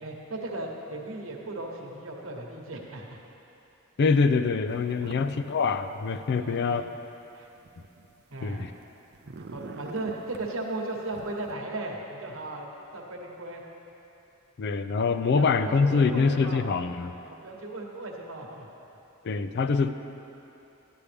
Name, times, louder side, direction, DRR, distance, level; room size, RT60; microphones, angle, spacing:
voice 1, 0.0-3.1 5.0-5.2 6.4-6.9 7.3-7.5 8.3-8.7 9.5-13.6 15.3-16.7 17.2-18.7, right 2 dB, 70° right, 0 dB, 1.2 m, -37 dB
voice 2, 4.0-6.8 8.4-8.7 14.6-17.2 19.2-19.9, left 4 dB, 55° left, 10 dB, 0.4 m, -24 dB
sound 1, 4.7-5.3 5.6-6.6 7.2-8.8 9.1-10.5 11.1-11.5, right 4 dB, 50° right, 0.5 m, -45 dB
12.0 x 9.8 x 3.4 m, 3.0 s
head